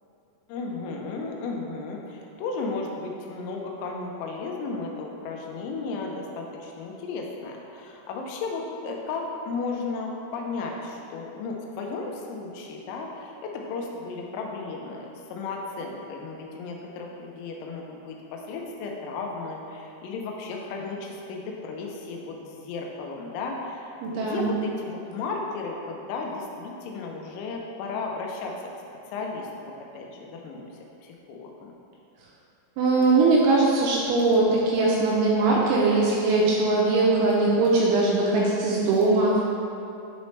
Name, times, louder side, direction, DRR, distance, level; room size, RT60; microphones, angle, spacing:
voice 1, 0.5-28.6 29.1-30.7 31.0-31.7, left 3 dB, 90° left, 0 dB, 3.5 m, -34 dB
voice 2, 24.0-24.5 32.8-39.4, right 3 dB, 80° right, -4 dB, 2.8 m, -21 dB
10.5 x 4.1 x 3.2 m, 2.9 s
omnidirectional pair, 5.9 m